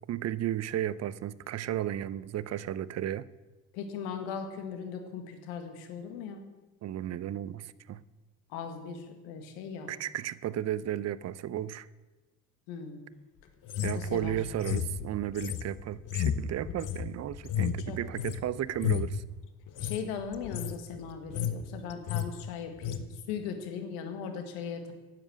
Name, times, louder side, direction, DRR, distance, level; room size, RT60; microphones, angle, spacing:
voice 1, 0.1-3.2 6.8-8.0 9.9-11.9 13.8-19.2, right 11 dB, 40° right, 18 dB, 0.6 m, -34 dB
voice 2, 3.7-6.4 8.5-9.9 12.7-13.0 13.9-14.4 17.9-18.0 19.8-23.0 23.3-24.9, left 6 dB, 80° left, 6 dB, 1.9 m, -38 dB
sound 1, 13.7-18.4 18.7-19.2 19.7-20.0 20.3-20.8 21.1-21.6 21.9-22.3 22.8-23.0, left 9 dB, 50° left, 1.0 m, -32 dB
9.9 x 7.6 x 7.8 m, 1.2 s
supercardioid pair, 75°, 39 cm